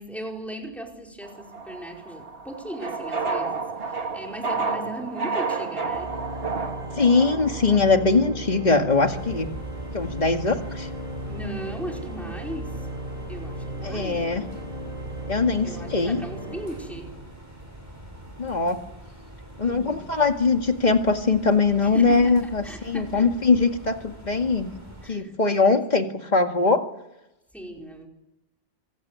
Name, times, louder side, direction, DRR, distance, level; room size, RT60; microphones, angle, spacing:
voice 1, 0.0-6.2 11.3-12.9 13.3-14.3 15.6-17.1 19.6-20.1 21.8-23.3 25.0-25.8 27.5-28.1, right 1 dB, ahead, 0 dB, 4.9 m, -37 dB
sound 1, 1.2-7.8, right 4 dB, 60° right, 2.1 m, -30 dB
Organ, 5.7-17.5, right 1 dB, 35° right, 8.3 m, -36 dB
voice 2, 7.0-9.5 9.9-10.9 13.8-14.4 15.3-16.2 18.4-18.8 19.6-24.7 25.1-26.8, left 4 dB, 40° left, 5 dB, 2.2 m, -21 dB
sound 2, 9.1-25.1, right 1 dB, 15° right, 7.0 m, -44 dB
26.0 x 16.0 x 9.6 m, 0.91 s
omnidirectional pair, 1.1 m